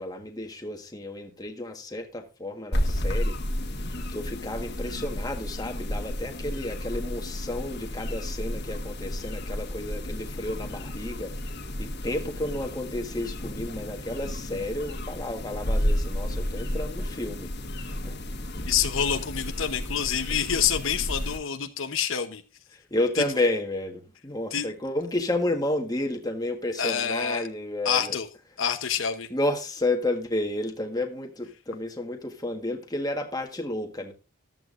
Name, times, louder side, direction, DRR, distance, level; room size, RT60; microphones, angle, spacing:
voice 1, 0.0-3.4 4.1-11.3 11.8-17.5 17.9-18.2 22.7-28.2 29.3-34.1, left 1 dB, 15° left, 1.5 m, -31 dB
sound 1, 2.7-21.4, left 1 dB, 50° left, 1.7 m, -32 dB
voice 2, 18.7-22.4 24.5-24.7 26.8-27.5 27.8-28.3 28.6-29.3, left 8 dB, 65° left, 1.0 m, -27 dB
14.0 x 12.0 x 2.6 m
head